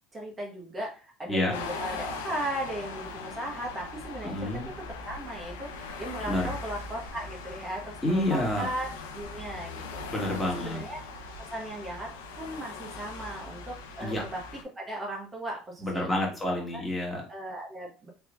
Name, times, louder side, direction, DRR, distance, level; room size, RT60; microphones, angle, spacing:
voice 1, 0.1-8.9 9.1-10.0 10.4-11.0 11.5-12.1 12.4-14.4 14.8-16.1 16.5-16.8 17.3-18.1, right 1 dB, 25° right, -1 dB, 1.1 m, -37 dB
sound 1, 1.5-14.6, left 4 dB, 90° left, 0.5 m, -40 dB
voice 2, 4.2-4.7 6.3-6.5 8.0-8.7 10.1-10.8 14.0-14.2 15.8-17.2, left 1 dB, 15° left, -2 dB, 1.8 m, -28 dB
3.5 x 3.2 x 2.5 m, 0.35 s
hypercardioid pair, 85°, 0 cm